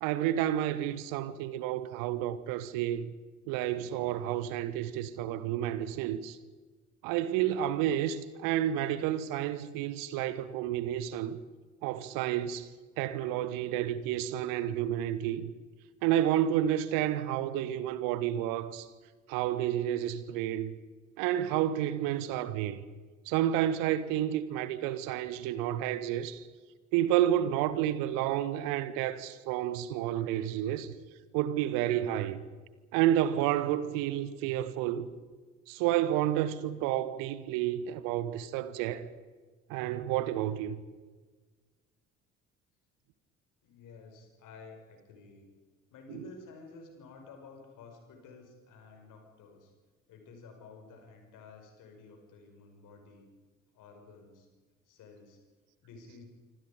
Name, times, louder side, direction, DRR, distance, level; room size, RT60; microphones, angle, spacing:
voice 1, 0.0-3.1 3.5-6.4 7.0-11.4 11.8-12.7 13.0-15.5 16.0-18.9 19.3-20.7 21.2-22.8 23.3-26.5 26.9-30.9 31.3-32.4 32.9-35.1 35.7-39.1 39.7-40.8, right 12 dB, 60° right, 1.3 m, -30 dB
voice 2, 43.6-45.5 45.9-49.7 50.1-53.3 53.7-54.5 54.9-55.4 55.8-56.3, left 4 dB, 55° left, 5.9 m, -52 dB
26.5 x 25.5 x 5.2 m
figure-of-eight pair, 50°, 37 cm